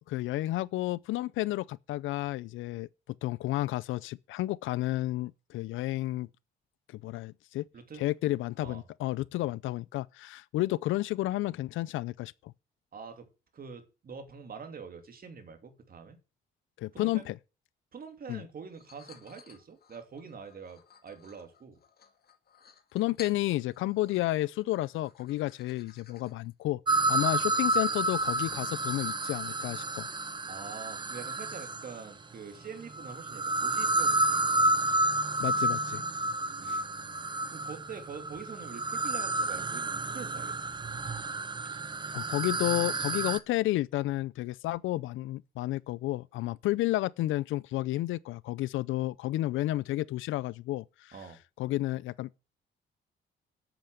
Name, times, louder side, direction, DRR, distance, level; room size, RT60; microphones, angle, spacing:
voice 1, 0.1-2.9 3.2-6.3 6.9-7.6 8.0-12.5 16.8-17.4 18.3-18.4 22.9-26.8 27.1-30.1 35.4-36.0 36.6-36.8 42.1-51.1 51.6-52.4, left 16 dB, 85° left, 0.5 m, -31 dB
voice 2, 7.7-8.1 8.6-8.8 9.4-9.5 12.9-16.2 16.9-17.3 17.9-21.8 27.3-27.5 30.5-34.8 36.6-40.7 51.1-51.4, right 5 dB, 50° right, 2.9 m, -45 dB
sound 1, 18.7-26.5, left 6 dB, 50° left, 2.0 m, -55 dB
sound 2, 26.9-32.1 32.9-43.4, right 2 dB, 25° right, 0.9 m, -30 dB
8.6 x 7.9 x 7.9 m
cardioid pair, 90°, 20 cm